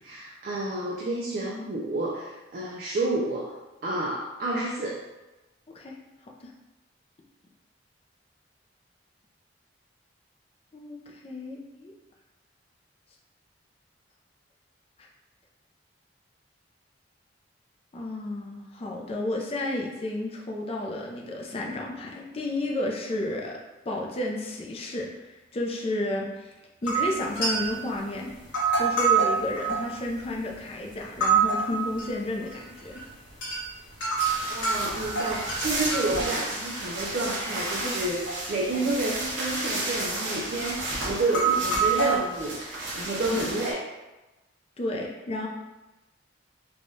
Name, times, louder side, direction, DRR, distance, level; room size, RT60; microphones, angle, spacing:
voice 1, 0.0-3.5 3.8-5.1 34.5-43.8, right 2 dB, 50° right, -4 dB, 0.4 m, -30 dB
voice 2, 11.2-11.9 17.9-23.6 23.9-26.5 26.8-28.3 28.8-33.0 37.8-38.0 38.8-38.9 43.3-43.4 44.8-45.5, left 1 dB, 30° left, -1 dB, 0.4 m, -32 dB
sound 1, 26.9-27.9 28.4-30.6 31.0-32.1 32.4-33.0 33.3-33.6 34.0-37.3 37.6-38.3 38.7-39.5 39.8-40.1 40.7-40.8 41.2-42.2, right 5 dB, 75° left, 1.2 m, -26 dB
sound 2, 34.2-43.7, right 2 dB, 70° right, 0.8 m, -33 dB
3.3 x 2.3 x 2.6 m, 1.1 s
head